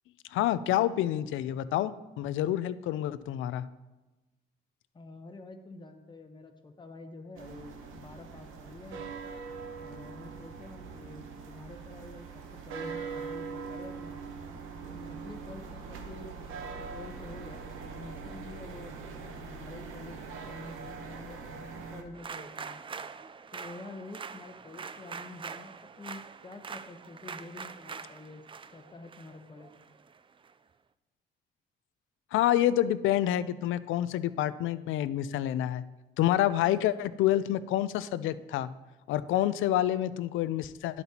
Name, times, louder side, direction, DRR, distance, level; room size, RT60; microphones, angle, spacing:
voice 1, 0.3-3.7 32.3-35.8 36.2-38.7 39.1-41.0, left 12 dB, 85° left, 15 dB, 0.4 m, -28 dB
voice 2, 4.9-9.1 9.8-14.2 14.9-17.6 17.9-20.2 20.5-22.8 23.5-28.4 28.7-29.7, left 2 dB, 25° left, 5 dB, 0.9 m, -48 dB
sound 1, 7.4-22.0, right 5 dB, 90° right, 1.0 m, -42 dB
sound 2, 22.1-30.5, right 5 dB, 25° right, 0.4 m, -44 dB
11.0 x 8.1 x 2.9 m, 1.1 s
cardioid pair, 90°, 20 cm